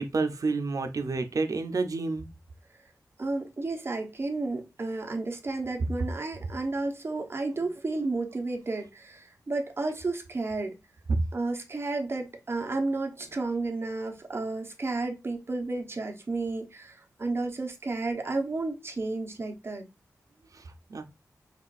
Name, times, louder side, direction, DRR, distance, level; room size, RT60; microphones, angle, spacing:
voice 1, 0.0-2.3 11.1-11.2 20.5-20.6 20.9-21.0, right 3 dB, 65° right, 0.7 m, -28 dB
voice 2, 3.2-10.8 11.3-19.8, right 3 dB, 40° right, 1.0 m, -32 dB
5.8 x 2.5 x 2.5 m
wide cardioid pair, 110°, 6 cm